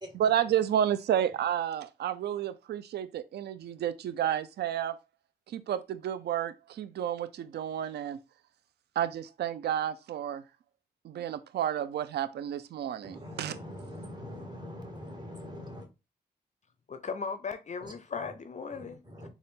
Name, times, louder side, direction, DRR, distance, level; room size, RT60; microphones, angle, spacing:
voice 1, 0.1-5.0 5.5-8.2 9.0-10.4 11.0-13.6, right 10 dB, 65° right, 0.4 m, -31 dB
voice 2, 13.0-15.9 17.8-17.9 18.8-19.3, left 1 dB, 25° right, 1.6 m, -43 dB
voice 3, 16.9-19.0, left 5 dB, 40° left, 0.4 m, -37 dB
3.9 x 2.4 x 3.5 m
supercardioid pair, 45°, 18 cm